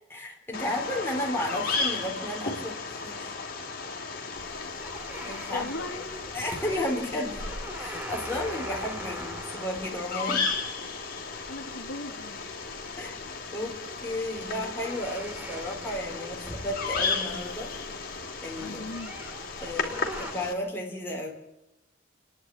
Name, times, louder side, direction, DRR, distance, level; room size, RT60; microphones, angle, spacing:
voice 1, 0.1-3.4 5.2-5.7 6.3-7.4 7.7-10.5 13.0-13.2 13.5-17.7 18.4-18.8 19.6-21.3, left 1 dB, 10° left, -1 dB, 4.1 m, -33 dB
Bird vocalization bird call bird song, 0.5-20.5, left 4 dB, 50° left, 2.9 m, -35 dB
sound 1, 4.3-20.3, equal, 10° right, 2.1 m, -43 dB
voice 2, 5.5-6.1 11.5-12.4 18.6-19.2, left 2 dB, 85° left, 5 dB, 2.0 m, -38 dB
28.5 x 10.5 x 9.0 m, 0.94 s
head